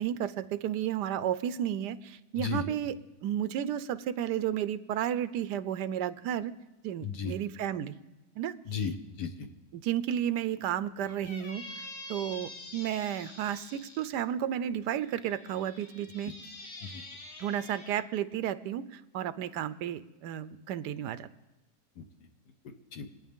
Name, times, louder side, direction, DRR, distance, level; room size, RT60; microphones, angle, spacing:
voice 1, 0.0-3.0 3.2-6.5 6.8-7.9 8.4-8.5 9.7-11.6 12.1-16.3 17.4-21.3, right 10 dB, 80° right, 14 dB, 1.2 m, -32 dB
voice 2, 7.0-7.3 8.6-9.5 16.3-16.4 16.8-17.0 22.0-22.1 22.6-23.1, left 6 dB, 80° left, 6 dB, 1.7 m, -35 dB
Squeak, 11.0-14.1 14.9-18.0, left 2 dB, 40° left, 1.5 m, -46 dB
25.5 x 9.5 x 3.6 m, 1.0 s
omnidirectional pair, 1.8 m